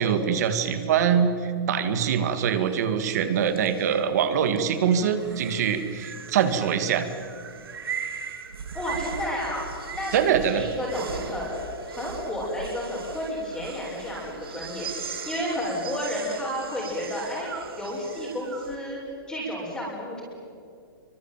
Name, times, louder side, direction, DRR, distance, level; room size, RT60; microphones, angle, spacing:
voice 1, 0.0-7.1 10.1-10.6, right 7 dB, 45° right, 9 dB, 2.3 m, -23 dB
sound 1, 1.8-18.8, right 6 dB, 85° right, 3.3 m, -39 dB
voice 2, 8.7-19.0 19.3-20.2, left 1 dB, 5° left, -8 dB, 6.2 m, -31 dB
26.0 x 24.5 x 9.2 m, 2.3 s
hypercardioid pair, 165°, 12 cm